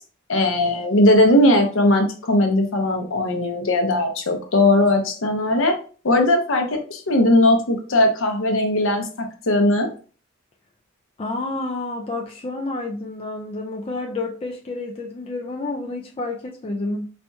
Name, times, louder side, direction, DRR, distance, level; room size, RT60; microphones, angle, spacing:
voice 1, 0.3-5.8 6.0-9.9, left 1 dB, 65° left, 0.7 m, -19 dB
voice 2, 11.2-17.0, left 2 dB, 25° left, 0.4 m, -29 dB
4.2 x 2.8 x 2.3 m
head